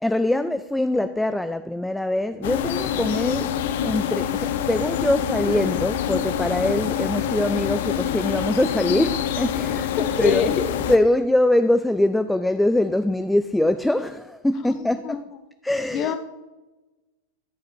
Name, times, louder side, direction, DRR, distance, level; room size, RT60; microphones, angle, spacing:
voice 1, 0.0-10.5 10.9-15.2 15.6-16.1, left 1 dB, 5° left, 0.3 m, -23 dB
sound 1, 2.4-11.0, left 10 dB, 55° left, 0.6 m, -26 dB
voice 2, 10.0-10.7 14.6-15.2 15.9-16.2, left 7 dB, 35° left, 1.0 m, -26 dB
11.0 x 7.2 x 4.4 m
figure-of-eight pair, 90°, 0 cm